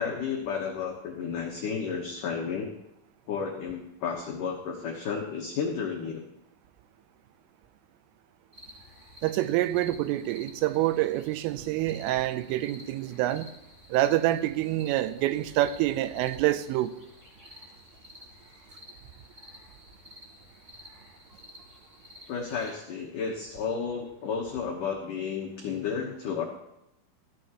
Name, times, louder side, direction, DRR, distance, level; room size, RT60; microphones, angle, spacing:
voice 1, 0.0-2.7 3.3-6.3 22.3-26.4, left 6 dB, 80° left, -1 dB, 1.8 m, -32 dB
sound 1, 8.5-22.7, left 1 dB, 10° right, 4.9 m, -51 dB
voice 2, 9.2-13.5 13.9-16.9, right 14 dB, 90° right, 13 dB, 3.3 m, -26 dB
17.5 x 15.0 x 3.0 m, 0.85 s
omnidirectional pair, 5.7 m